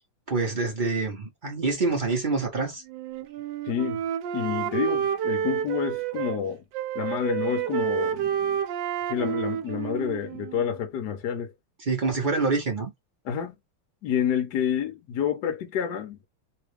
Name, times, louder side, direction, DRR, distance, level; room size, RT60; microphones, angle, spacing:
voice 1, 0.3-2.8 11.8-12.9, right 3 dB, 50° right, 0.5 m, -26 dB
Wind instrument woodwind instrument, 2.9-6.4 6.7-10.7, right 9 dB, 75° right, 1.1 m, -29 dB
voice 2, 3.7-4.0 4.3-6.6 6.9-8.6 9.1-11.5 13.2-13.6 14.0-16.2, left 8 dB, 65° left, 1.2 m, -29 dB
3.4 x 2.3 x 3.2 m
omnidirectional pair, 2.3 m